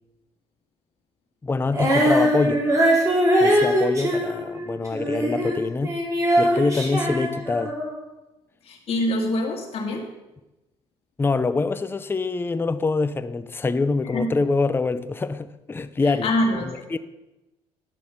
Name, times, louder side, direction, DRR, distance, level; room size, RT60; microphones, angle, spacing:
voice 1, 1.4-2.6 3.4-5.9 6.4-7.7 11.2-16.3 16.6-17.0, left 3 dB, 20° left, 0.5 m, -25 dB
Female singing, 1.7-8.0, equal, 25° right, 3.9 m, -21 dB
voice 2, 8.6-10.1 14.1-14.3 16.0-16.8, left 1 dB, 55° left, 2.1 m, -25 dB
11.0 x 6.2 x 5.7 m
supercardioid pair, 75°, 12 cm